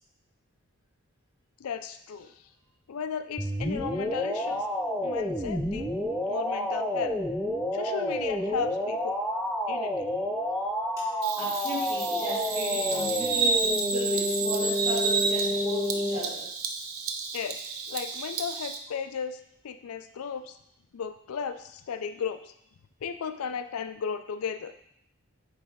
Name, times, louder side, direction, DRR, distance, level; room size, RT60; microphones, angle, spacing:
voice 1, 1.6-2.4 2.9-4.7 5.0-5.9 6.2-7.2 7.7-9.2 9.7-10.1 17.3-19.4 19.6-20.6 20.9-22.5 23.0-24.7, left 6 dB, 85° left, 10 dB, 0.4 m, -35 dB
sound 1, 3.4-16.2, left 1 dB, ahead, 0.4 m, -29 dB
Bird vocalization bird call bird song, 11.2-18.8, right 4 dB, 80° right, 0.6 m, -31 dB
voice 2, 11.3-16.5, left 1 dB, 15° right, -8 dB, 2.8 m, -36 dB
7.8 x 3.2 x 4.6 m, 0.74 s
head